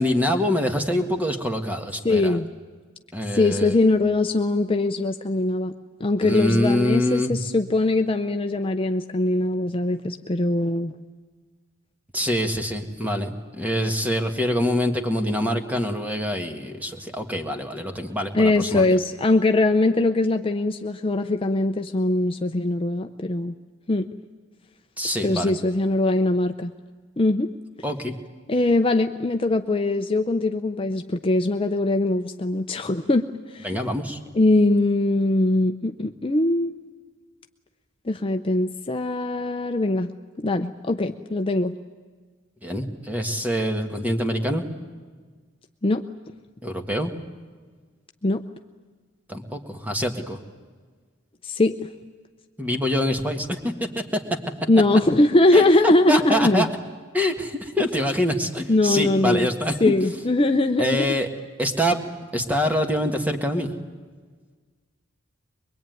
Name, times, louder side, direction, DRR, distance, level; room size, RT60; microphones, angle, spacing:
voice 1, 0.0-2.4 3.1-3.7 6.2-7.3 12.1-19.0 25.0-25.5 27.8-28.2 33.6-34.2 42.6-44.6 46.6-47.1 49.3-50.4 52.6-54.2 55.5-56.7 57.1-59.8 60.8-61.3 61.6-62.0 62.3-63.7, equal, 10° right, 5 dB, 1.8 m, -25 dB
voice 2, 2.0-2.5 3.3-5.7 6.0-10.9 18.3-23.5 23.9-24.1 25.2-26.7 27.2-27.5 28.5-33.7 34.3-36.8 38.1-40.1 40.4-41.7 45.8-46.1 48.2-48.4 51.4-51.9 54.7-56.7 58.7-59.5 59.8-61.1, left 2 dB, 30° left, 6 dB, 0.7 m, -21 dB
23.0 x 22.5 x 9.3 m, 1.5 s
head